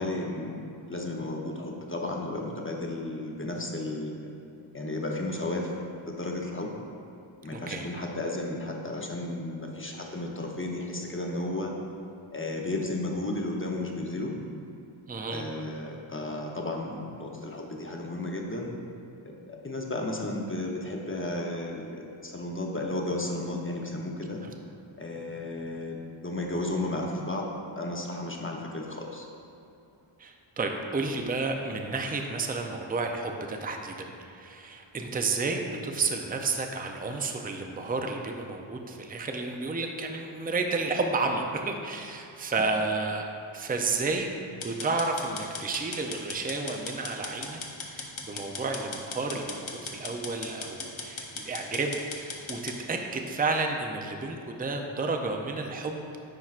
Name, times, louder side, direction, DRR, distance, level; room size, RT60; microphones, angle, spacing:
voice 1, 0.0-4.3 4.7-5.7 6.1-6.7 7.4-11.7 12.3-14.3 15.3-18.7 19.2-24.4 25.0-27.5 27.8-29.3, left 2 dB, 25° left, 0 dB, 0.8 m, -33 dB
voice 2, 7.5-7.9 15.1-15.4 30.2-43.3 43.5-47.6 47.9-56.0, right 3 dB, 20° right, 3 dB, 0.4 m, -31 dB
sound 1, 44.6-52.8, left 4 dB, 70° left, 0.8 m, -38 dB
9.7 x 4.5 x 2.4 m, 2.7 s
wide cardioid pair, 50°, 50 cm